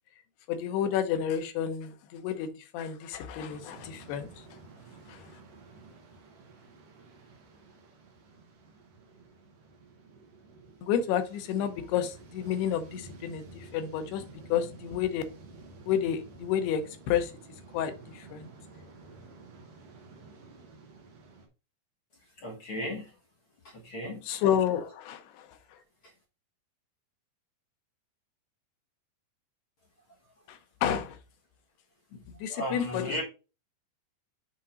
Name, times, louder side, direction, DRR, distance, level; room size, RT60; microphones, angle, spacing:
voice 1, 0.5-4.6 5.1-5.4 10.8-15.2 15.9-17.3 17.7-18.5 24.2-25.8 30.5-31.2 32.3-33.2, left 9 dB, 90° left, 3.0 m, -31 dB
sound 1, 3.5-21.5, right 3 dB, 55° right, 1.9 m, -51 dB
voice 2, 22.4-23.1 23.6-24.2 32.1-32.2 32.5-33.2, left 1 dB, 55° left, 1.4 m, -35 dB
7.5 x 3.7 x 4.3 m
omnidirectional pair, 4.5 m